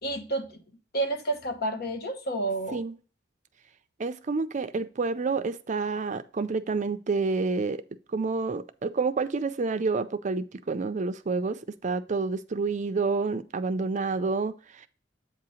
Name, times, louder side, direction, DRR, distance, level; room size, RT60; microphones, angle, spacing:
voice 1, 0.0-0.6 0.9-2.8, right 2 dB, 55° left, 1.1 m, -30 dB
voice 2, 4.0-7.8 8.1-14.8, right 4 dB, 40° right, 0.5 m, -29 dB
8.1 x 2.9 x 6.2 m
head